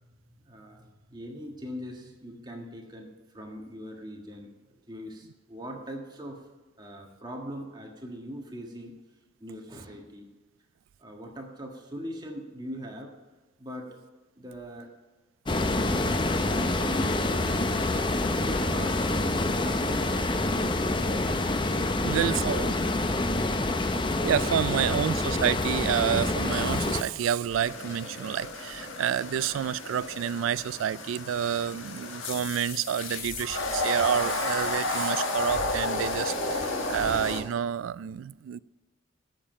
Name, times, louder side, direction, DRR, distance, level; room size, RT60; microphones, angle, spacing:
voice 1, 0.4-3.1 3.3-6.5 6.8-9.0 9.4-10.3 11.0-13.2 13.6-14.0 14.4-14.9 15.7-17.8 18.1-20.7 21.9-23.5, equal, 20° right, 1 dB, 1.5 m, -41 dB
sound 1, 15.5-27.0, left 2 dB, 25° left, 0.6 m, -27 dB
voice 2, 22.0-22.7 24.2-38.6, right 9 dB, 85° right, 20 dB, 0.3 m, -29 dB
sound 2, 27.5-37.4, left 2 dB, 90° left, 1.5 m, -32 dB
8.8 x 7.4 x 8.6 m, 1.2 s
head